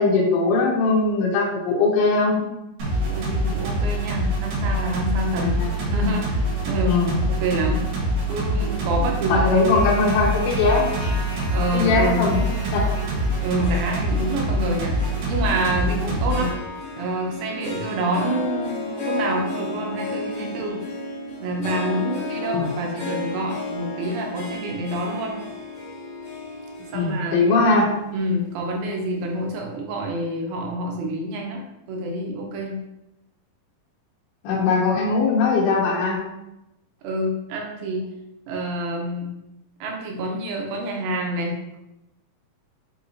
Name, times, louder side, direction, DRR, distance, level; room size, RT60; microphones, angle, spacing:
voice 1, 0.0-2.5 5.4-5.7 6.9-7.2 9.3-11.1 11.7-12.8 16.4-16.5 22.5-22.7 26.9-27.9 34.4-36.2, left 3 dB, 75° left, -4 dB, 2.1 m, -20 dB
sound 1, 2.8-16.5, equal, 70° right, 3.0 m, -25 dB
voice 2, 3.1-5.5 5.9-7.0 7.3-7.9 8.3-9.6 11.5-12.3 13.4-16.5 17.0-20.8 21.4-25.4 26.9-27.4 28.1-31.6 31.9-32.8 37.0-38.1 38.5-39.3 39.8-41.8, right 1 dB, 90° right, 0 dB, 2.6 m, -27 dB
Harp, 10.8-29.3, left 2 dB, 55° left, 2.5 m, -34 dB
6.5 x 2.8 x 2.7 m, 0.91 s
omnidirectional pair, 4.0 m